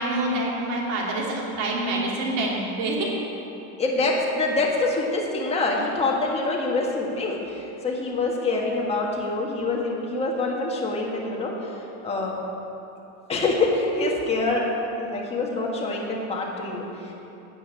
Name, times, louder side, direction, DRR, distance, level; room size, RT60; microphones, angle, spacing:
voice 1, 0.0-3.1, right 2 dB, 55° right, -3 dB, 2.9 m, -26 dB
voice 2, 3.8-12.4 13.3-14.7 15.0-17.1, left 3 dB, 15° left, -2 dB, 1.6 m, -25 dB
9.8 x 8.1 x 8.8 m, 2.9 s
supercardioid pair, 165°, 42 cm